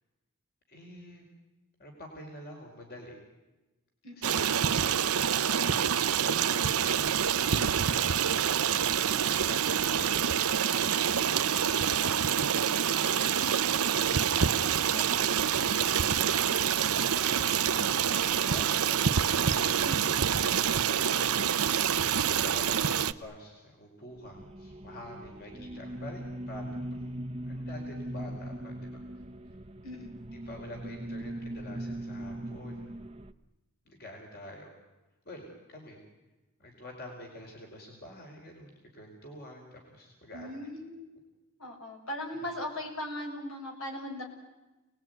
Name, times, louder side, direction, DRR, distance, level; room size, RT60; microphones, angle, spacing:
voice 1, 0.7-1.2 1.8-3.2 4.2-7.1 8.8-12.6 12.8-13.7 14.0-15.7 16.7-19.4 20.4-21.3 22.3-29.0 30.4-32.9 33.8-34.7 35.2-36.0 36.6-40.5 42.3-42.5, left 1 dB, 45° left, 1 dB, 4.9 m, -47 dB
voice 2, 4.0-4.3 13.4-13.7 14.6-15.2 19.8-20.2 22.7-23.0 29.8-30.1 40.3-41.0 41.6-44.2, left 1 dB, 70° left, 2 dB, 6.5 m, -39 dB
Stream, 4.2-23.1, right 8 dB, 75° right, 0.8 m, -27 dB
Eerie Tone Music Background Loop, 24.1-33.3, right 1 dB, 25° right, 1.0 m, -40 dB
29.5 x 20.0 x 9.5 m, 1.1 s
head